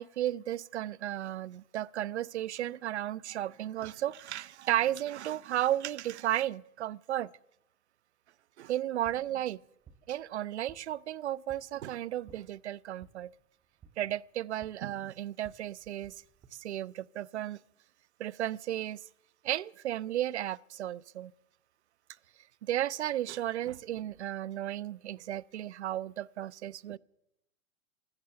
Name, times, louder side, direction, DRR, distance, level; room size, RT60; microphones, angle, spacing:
voice 1, 0.0-7.3 8.6-9.6 10.1-13.3 14.0-16.2 16.5-17.6 18.2-19.0 19.4-21.3 22.6-27.0, right 12 dB, 55° right, 0.5 m, -34 dB
sound 1, 8.8-16.5, right 6 dB, 10° right, 0.7 m, -60 dB
15.5 x 13.5 x 6.9 m
figure-of-eight pair, 105°, 40 cm